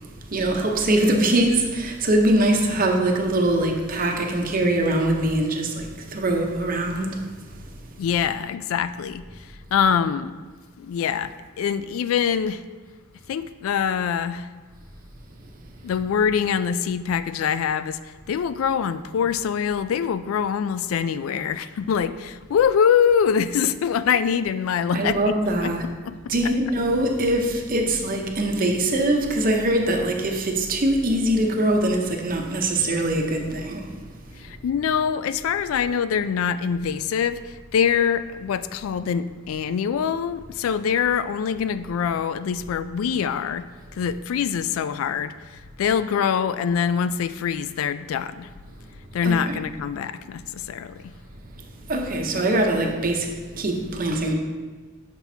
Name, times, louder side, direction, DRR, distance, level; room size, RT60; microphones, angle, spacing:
voice 1, 0.3-7.3 24.9-25.8 26.3-33.9 49.2-49.6 51.9-54.3, right 1 dB, 45° right, 2 dB, 0.8 m, -22 dB
voice 2, 8.0-10.4 10.8-12.6 13.3-14.5 15.8-25.3 25.6-26.5 34.4-43.7 43.9-48.5 49.1-51.1, left 7 dB, 85° left, 13 dB, 0.3 m, -24 dB
7.0 x 6.0 x 2.7 m, 1.3 s
head